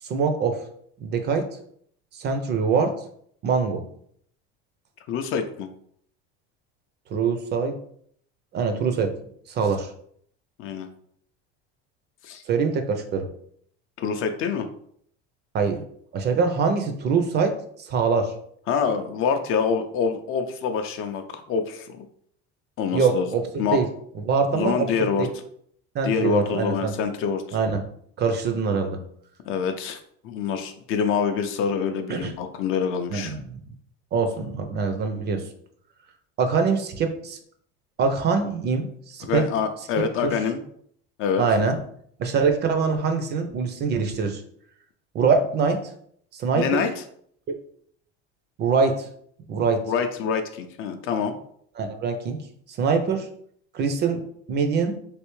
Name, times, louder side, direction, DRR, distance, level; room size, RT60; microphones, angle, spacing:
voice 1, 0.0-0.6 1.0-1.5 2.2-2.9 3.4-3.8 7.1-7.7 8.5-9.1 9.5-9.9 12.5-13.3 15.5-15.8 16.1-17.5 17.8-18.3 22.9-23.4 23.7-23.9 24.3-24.9 25.2-25.3 25.9-26.9 27.5-27.8 28.2-29.0 32.1-32.3 33.1-33.6 34.1-35.4 36.4-37.4 38.0-39.4 40.2-40.3 41.4-41.8 42.2-44.4 45.1-45.8 46.3-46.8 47.5-47.6 48.6-49.1 49.5-49.8 51.8-52.4 52.8-53.3 53.7-54.2 54.5-55.0, right 5 dB, 35° right, 6 dB, 0.4 m, -23 dB
voice 2, 5.1-5.7 10.6-10.9 12.2-12.4 14.0-14.7 18.7-22.1 22.8-23.3 23.6-23.8 24.5-25.3 26.0-27.6 29.5-30.0 30.2-33.3 39.2-40.6 41.2-41.4 46.5-47.0 49.9-51.4, left 6 dB, 45° left, 7 dB, 0.4 m, -26 dB
3.3 x 2.7 x 3.0 m, 0.64 s
cardioid pair, 135°, 32 cm